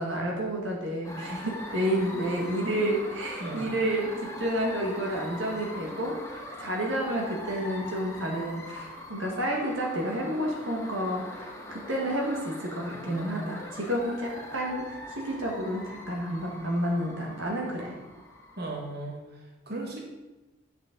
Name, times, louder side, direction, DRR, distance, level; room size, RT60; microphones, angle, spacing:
voice 1, 0.0-18.0, equal, 70° right, -1 dB, 1.6 m, -30 dB
sound 1, 1.0-19.0, left 1 dB, 15° left, 1.3 m, -42 dB
voice 2, 18.6-19.2 19.7-20.0, right 2 dB, 55° right, -1 dB, 1.6 m, -35 dB
8.9 x 7.9 x 3.8 m, 1.1 s
head